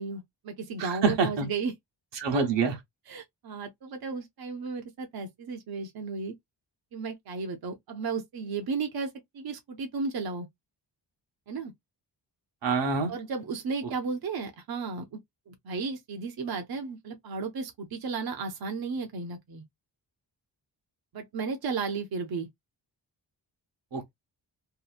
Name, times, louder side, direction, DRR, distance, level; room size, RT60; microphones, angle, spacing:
voice 1, 0.0-1.7 2.3-2.5 3.1-6.3 6.9-10.5 11.5-11.7 13.1-15.2 15.5-19.6 21.1-22.5, right 4 dB, 60° right, 0.7 m, -34 dB
voice 2, 0.8-1.5 2.2-2.7 12.6-13.1 23.9-24.1, right 4 dB, 85° right, 1.0 m, -26 dB
2.8 x 2.5 x 2.3 m
wide cardioid pair, 160°, 43 cm